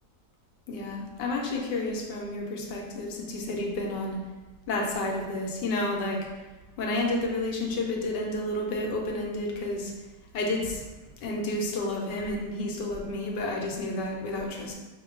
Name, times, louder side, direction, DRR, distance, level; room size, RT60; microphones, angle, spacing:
voice 1, 0.7-4.2 4.7-6.2 6.8-9.9 10.3-10.9 11.2-14.7, left 2 dB, 85° left, 0 dB, 1.4 m, -30 dB
5.2 x 2.2 x 3.8 m, 1.2 s
omnidirectional pair, 1.8 m